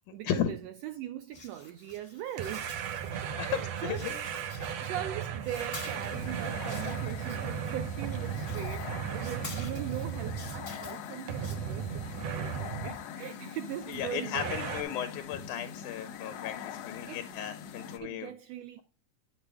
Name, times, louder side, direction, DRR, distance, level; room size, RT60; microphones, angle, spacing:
voice 1, 0.1-2.7 3.0-4.4 4.8-14.6 17.1-17.3 18.0-18.8, right 12 dB, 85° right, 1.4 m, -41 dB
sound 1, 1.3-3.5 3.7-5.1 5.4-11.6, left 3 dB, 40° left, 0.8 m, -49 dB
sound 2, 2.4-10.9 11.3-13.0 14.3-14.8, right 8 dB, 70° right, 1.6 m, -36 dB
voice 2, 3.1-4.2 4.6-4.9 13.9-18.3, left 9 dB, 90° left, 2.2 m, -35 dB
sound 3, 5.8-18.0, left 8 dB, 70° left, 1.6 m, -43 dB
8.6 x 6.2 x 3.3 m
omnidirectional pair, 3.5 m